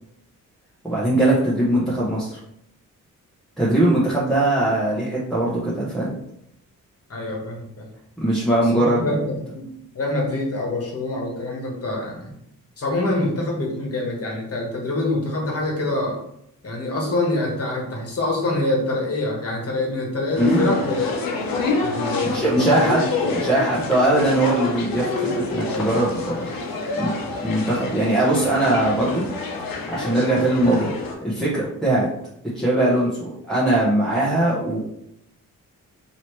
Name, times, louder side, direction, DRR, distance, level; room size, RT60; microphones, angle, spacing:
voice 1, 0.8-2.4 3.6-6.1 8.2-9.2 20.4-20.7 22.3-23.1 23.4-26.5 26.9-27.1 27.4-29.3 29.9-30.9 31.2-32.1 32.5-34.8, right 1 dB, ahead, -8 dB, 0.9 m, -20 dB
voice 2, 7.1-7.9 8.7-9.2 9.5-9.7 9.9-12.3 12.8-16.2 16.6-21.2 21.8-23.3, left 2 dB, 45° left, -1 dB, 1.3 m, -25 dB
sound 1, 20.3-31.1, left 3 dB, 90° left, 0.9 m, -28 dB
4.9 x 2.9 x 3.1 m, 0.77 s
wide cardioid pair, 135°, 33 cm